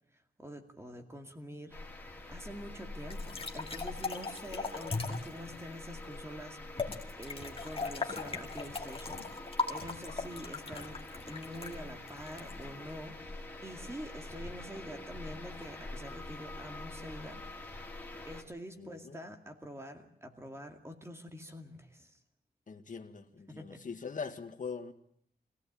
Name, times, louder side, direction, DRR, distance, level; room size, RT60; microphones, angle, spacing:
voice 1, 0.4-1.8 2.3-17.4 18.2-22.2 23.5-23.8, equal, 15° right, 5 dB, 2.3 m, -46 dB
sound 1, 1.7-18.4, left 2 dB, 10° left, 3.3 m, -46 dB
sound 2, 3.1-5.3 6.8-12.9, left 4 dB, 35° left, 2.2 m, -38 dB
voice 2, 18.8-19.2 22.7-24.9, left 5 dB, 50° left, 6 dB, 1.8 m, -42 dB
25.0 x 16.5 x 8.7 m, 0.71 s
wide cardioid pair, 175°, 17 cm